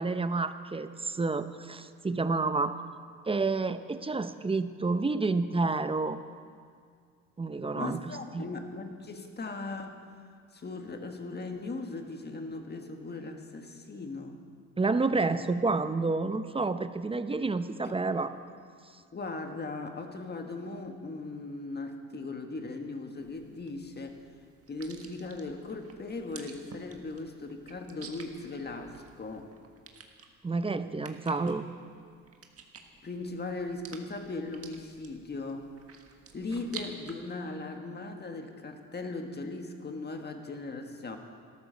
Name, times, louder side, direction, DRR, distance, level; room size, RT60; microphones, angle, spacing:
voice 1, 0.0-2.8 3.3-6.2 7.4-8.5 14.8-18.3 30.4-31.7, right 3 dB, 20° right, 11 dB, 0.7 m, -29 dB
voice 2, 7.7-10.0 10.5-14.4 17.8-18.0 19.1-24.2 24.7-29.5 33.0-35.7 36.3-41.2, left 3 dB, 35° left, 4 dB, 1.7 m, -38 dB
sound 1, 23.2-37.1, right 5 dB, 50° right, 1.6 m, -51 dB
13.0 x 13.0 x 6.5 m, 2.1 s
cardioid pair, 90°, 30 cm